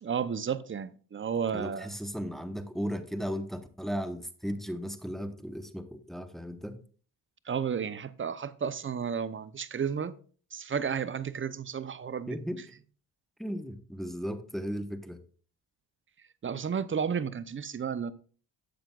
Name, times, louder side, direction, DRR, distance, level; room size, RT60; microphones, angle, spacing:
voice 1, 0.0-1.9 7.4-10.1 10.5-12.4 16.4-18.1, right 7 dB, 30° right, 0.7 m, -32 dB
voice 2, 1.5-6.8 12.3-12.6 13.4-15.2, equal, ahead, 1.1 m, -36 dB
11.5 x 7.7 x 2.4 m
supercardioid pair, 55°, 43 cm